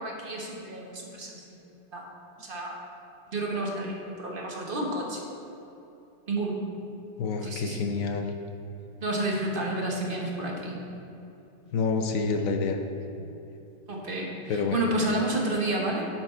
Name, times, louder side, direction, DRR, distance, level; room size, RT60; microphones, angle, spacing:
voice 1, 0.0-1.5 1.9-2.1 2.4-2.8 3.3-5.2 6.3-6.6 7.4-7.8 9.0-10.9 13.9-16.1, right 1 dB, 35° right, -1 dB, 1.1 m, -30 dB
voice 2, 7.2-8.3 11.7-12.8 13.2-13.3 14.5-14.8, left 4 dB, 65° left, 5 dB, 0.8 m, -28 dB
11.5 x 4.6 x 4.4 m, 2.9 s
omnidirectional pair, 1.9 m